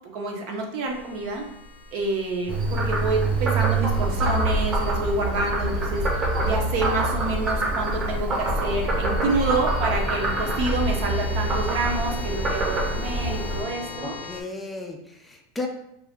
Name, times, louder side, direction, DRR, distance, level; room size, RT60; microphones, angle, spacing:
voice 1, 0.1-1.4 1.9-14.1, right 2 dB, 60° right, 1 dB, 0.7 m, -28 dB
sound 1, 0.9-14.4, left 3 dB, 85° left, 0.5 m, -39 dB
Frog, 2.5-13.6, right 2 dB, 30° right, 0.8 m, -25 dB
voice 2, 14.0-15.7, left 2 dB, 10° left, 2 dB, 0.4 m, -34 dB
2.5 x 2.2 x 3.5 m, 0.77 s
supercardioid pair, 125°, 0 cm